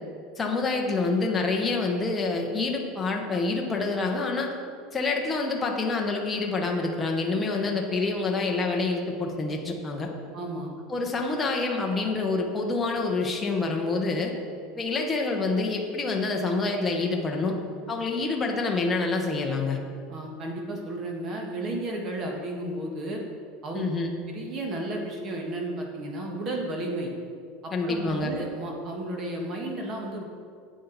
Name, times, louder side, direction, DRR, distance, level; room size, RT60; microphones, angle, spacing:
voice 1, 0.4-4.5 4.9-10.1 10.9-14.3 14.8-17.5 17.9-19.8 23.7-24.2 27.7-28.3, left 3 dB, 15° left, 0 dB, 0.9 m, -27 dB
voice 2, 10.3-10.7 20.1-23.2 23.6-23.8 24.3-27.1 27.6-30.2, right 1 dB, 30° right, 1 dB, 1.5 m, -33 dB
10.0 x 8.4 x 4.0 m, 2.2 s
supercardioid pair, 160°, 0 cm